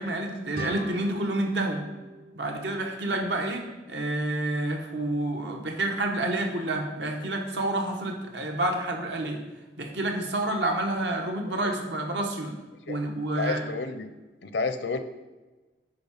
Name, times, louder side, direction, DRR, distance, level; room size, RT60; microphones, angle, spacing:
voice 1, 0.0-1.8 2.4-9.4 9.8-12.5 12.9-13.7, right 1 dB, 80° right, 2 dB, 1.2 m, -29 dB
sound 1, 0.5-3.3, right 1 dB, 55° right, 0.9 m, -40 dB
voice 2, 13.4-14.1 14.4-15.0, left 4 dB, 80° left, 9 dB, 0.7 m, -30 dB
9.5 x 3.7 x 5.8 m, 1.2 s
head